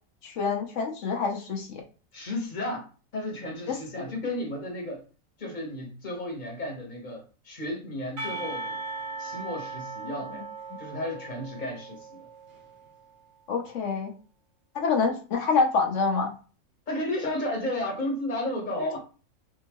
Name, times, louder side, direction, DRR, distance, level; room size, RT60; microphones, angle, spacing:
voice 1, 0.2-1.8 3.7-4.0 10.2-10.4 13.5-14.1 14.7-16.3, left 4 dB, 65° left, 2 dB, 1.0 m, -27 dB
voice 2, 2.1-2.9 3.1-5.0 5.4-8.8 9.2-10.4 10.8-12.3 16.9-19.0, left 1 dB, 35° left, 1 dB, 1.1 m, -33 dB
Percussion, 8.2-13.0, right 3 dB, 65° right, 1.5 m, -38 dB
3.6 x 2.7 x 2.9 m, 0.36 s
omnidirectional pair, 1.5 m